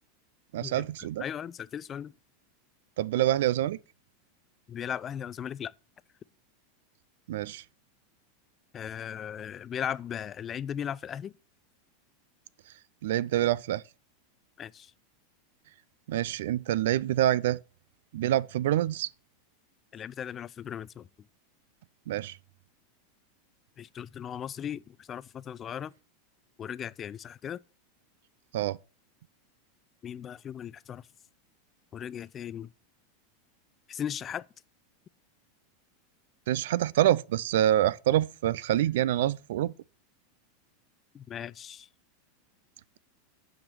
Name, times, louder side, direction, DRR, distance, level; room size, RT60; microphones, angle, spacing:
voice 1, 0.5-1.2 3.0-3.8 7.3-7.6 13.0-13.8 16.1-17.6 18.1-19.1 22.1-22.4 28.5-28.8 36.5-39.7, right 13 dB, 70° right, 0.3 m, -26 dB
voice 2, 1.2-2.1 4.7-5.7 8.7-11.3 14.6-14.9 19.9-21.1 23.8-25.9 26.6-27.6 30.0-31.1 31.9-32.7 33.9-34.4 41.1-41.9, left 9 dB, 30° left, 0.4 m, -37 dB
8.8 x 5.1 x 5.8 m
hypercardioid pair, 100°, 0 cm